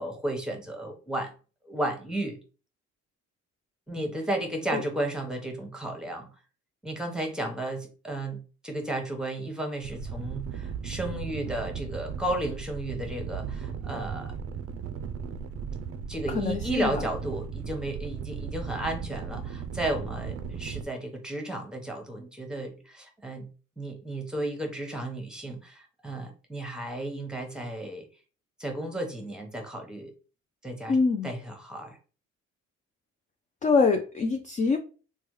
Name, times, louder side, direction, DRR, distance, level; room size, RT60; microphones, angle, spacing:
voice 1, 0.0-1.3 1.7-2.4 3.9-6.3 6.8-14.3 16.1-23.5 23.8-28.1 28.6-30.1 30.6-31.0 31.2-32.0, right 1 dB, 5° right, 3 dB, 0.9 m, -33 dB
sound 1, 9.8-20.8, right 6 dB, 50° right, 0.4 m, -36 dB
voice 2, 16.3-16.9 30.9-31.3 33.6-34.8, left 4 dB, 25° left, 5 dB, 0.4 m, -24 dB
3.2 x 2.2 x 3.1 m, 0.35 s
cardioid pair, 90°, 30 cm